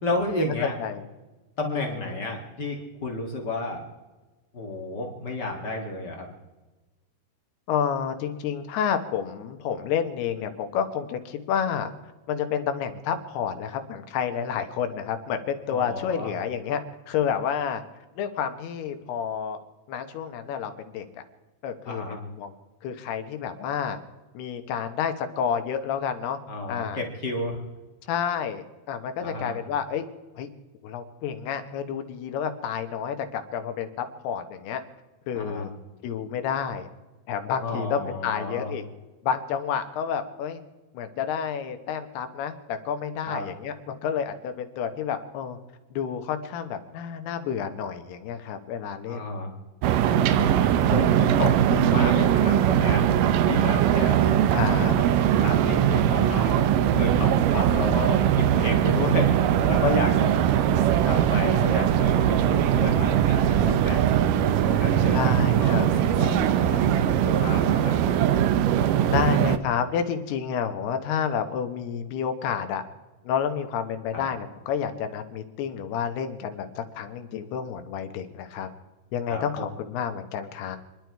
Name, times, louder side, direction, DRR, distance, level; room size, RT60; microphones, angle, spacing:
voice 1, 0.0-0.7 1.6-3.8 4.5-6.3 15.7-16.3 21.8-22.2 26.5-27.6 29.2-29.5 35.3-35.7 37.6-38.7 43.2-43.4 49.1-49.5 50.0-50.5 50.9-53.1 53.4-54.7 55.4-56.6 56.9-60.3 61.0-64.0 64.6-66.9 67.2-68.3 74.1-74.3 79.3-79.7, left 2 dB, 55° left, 1 dB, 1.1 m, -31 dB
voice 2, 1.7-2.2 7.7-11.9 12.3-16.8 17.1-17.8 18.2-19.6 19.9-21.2 21.6-22.5 22.8-24.0 24.3-26.4 26.7-27.0 28.1-30.0 30.4-30.5 30.8-34.8 35.3-35.7 36.0-36.9 37.3-38.8 39.2-40.6 40.9-45.6 45.9-49.3 50.9-51.2 54.5-54.9 65.1-65.9 69.1-72.8 73.2-78.7 79.1-80.8, left 7 dB, 75° left, 7 dB, 3.0 m, -30 dB
sound 1, 49.8-69.6, right 10 dB, 85° right, 1.9 m, -21 dB
Singing, 58.8-65.4, right 6 dB, 60° right, 2.0 m, -36 dB
28.0 x 11.0 x 4.6 m, 1.2 s
omnidirectional pair, 4.8 m